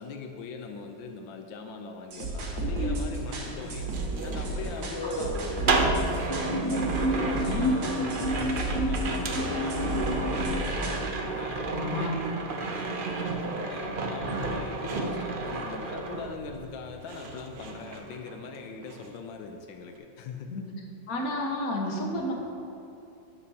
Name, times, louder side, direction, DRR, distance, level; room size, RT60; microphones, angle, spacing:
voice 1, 0.0-3.9 4.2-5.7 6.0-10.5 11.2-11.7 13.2-20.7, left 4 dB, 85° left, 4 dB, 1.4 m, -40 dB
sound 1, 2.1-11.1, right 2 dB, 80° right, 2.1 m, -33 dB
sound 2, 2.6-3.1 4.9-5.9 6.3-10.4, equal, 20° left, 0.8 m, -31 dB
sound 3, 2.6-16.8 17.1-18.6 18.8-19.2, right 3 dB, 65° right, 0.5 m, -32 dB
voice 2, 11.8-12.2 20.5-20.6 21.1-22.3, left 1 dB, 50° left, 0 dB, 1.7 m, -30 dB
12.5 x 10.5 x 2.9 m, 2.9 s
omnidirectional pair, 2.0 m